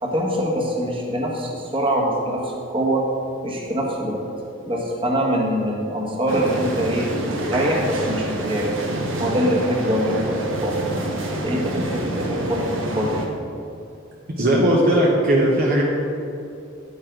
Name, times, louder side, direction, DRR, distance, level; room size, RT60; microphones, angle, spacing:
voice 1, 0.0-3.0 3.4-4.2 4.6-7.1 7.5-8.8 9.2-10.8 11.4-12.6 12.9-13.1, equal, 25° right, -2 dB, 1.6 m, -23 dB
sound 1, 6.3-13.3, right 1 dB, 70° right, 1.2 m, -27 dB
voice 2, 14.3-15.8, right 1 dB, 50° right, -3 dB, 1.2 m, -17 dB
9.7 x 9.4 x 3.9 m, 2.6 s
head